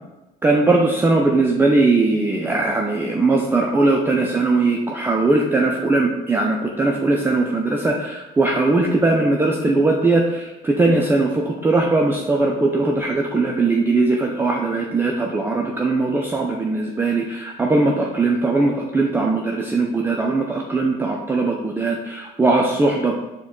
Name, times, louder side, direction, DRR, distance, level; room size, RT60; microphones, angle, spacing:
voice 1, 0.4-23.2, right 3 dB, 15° right, 0 dB, 0.4 m, -19 dB
4.9 x 2.2 x 3.7 m, 1.0 s
cardioid pair, 110°, 17 cm